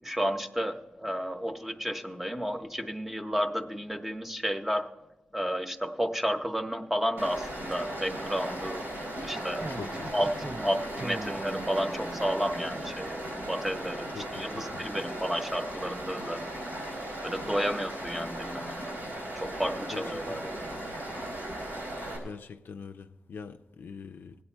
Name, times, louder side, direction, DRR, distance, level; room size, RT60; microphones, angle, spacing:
voice 1, 0.0-4.9 5.3-8.8 9.2-9.7 10.1-16.7 17.2-18.9 19.3-20.7, equal, 5° right, 0.8 m, -32 dB
Stream, 7.2-22.2, right 1 dB, 90° right, 3.8 m, -37 dB
sound 1, 9.3-13.5, right 2 dB, 30° right, 0.5 m, -41 dB
voice 2, 9.7-10.1 14.1-14.8 19.9-20.4 22.2-24.4, left 5 dB, 85° left, 0.4 m, -43 dB
19.5 x 8.4 x 4.4 m
wide cardioid pair, 80°, 3 cm